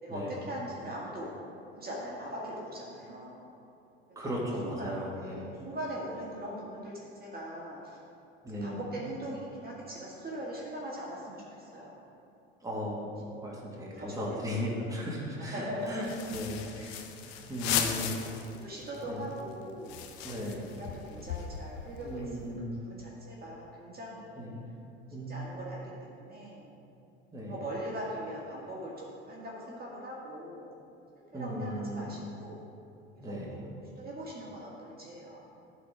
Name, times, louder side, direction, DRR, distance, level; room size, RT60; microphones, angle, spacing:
voice 1, 0.0-1.3 1.7-3.4 4.1-4.4 4.6-8.0 8.5-11.9 13.7-15.1 15.4-16.3 16.6-16.7 17.2-18.3 18.6-20.0 20.7-24.6 25.3-26.7 27.5-30.7 31.3-32.6 33.5-33.7 34.0-35.4, right 1 dB, 30° right, -5 dB, 2.0 m, -41 dB
voice 2, 4.2-5.4 8.4-8.8 12.6-17.0 17.5-18.2 19.1-19.2 20.2-20.7 22.0-22.8 24.4-24.6 25.1-25.5 27.3-27.6 31.3-32.1 33.2-33.6, equal, 10° right, -4 dB, 2.2 m, -36 dB
sound 1, 15.9-18.6 18.9-19.0 19.3-22.4, left 8 dB, 70° left, 0.8 m, -37 dB
12.0 x 4.3 x 5.1 m, 2.7 s
hypercardioid pair, 65°, 31 cm